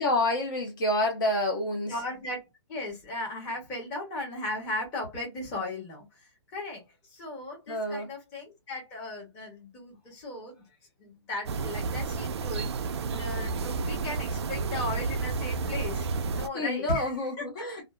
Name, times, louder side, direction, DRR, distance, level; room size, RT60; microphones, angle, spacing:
voice 1, 0.0-1.9 7.7-8.1 16.5-17.8, left 2 dB, 45° left, 0.8 m, -28 dB
voice 2, 1.9-2.4 2.7-10.7 11.0-17.6, left 1 dB, 15° left, 0.9 m, -37 dB
sound 1, 11.5-16.5, right 4 dB, 65° right, 0.4 m, -31 dB
2.4 x 2.4 x 2.2 m
hypercardioid pair, 170°, 15 cm